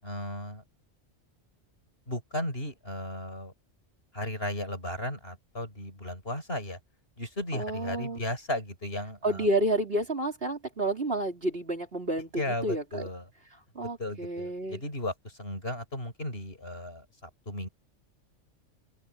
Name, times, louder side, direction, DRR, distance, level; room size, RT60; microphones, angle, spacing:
voice 1, 0.0-0.6 2.1-3.5 4.1-6.8 7.2-9.5 12.4-13.3 13.8-17.7, left 1 dB, 50° left, 7.0 m, -35 dB
voice 2, 7.5-8.2 9.2-12.3 12.6-13.1 13.8-14.8, right 1 dB, 50° right, 4.1 m, -30 dB
open air
omnidirectional pair, 1.3 m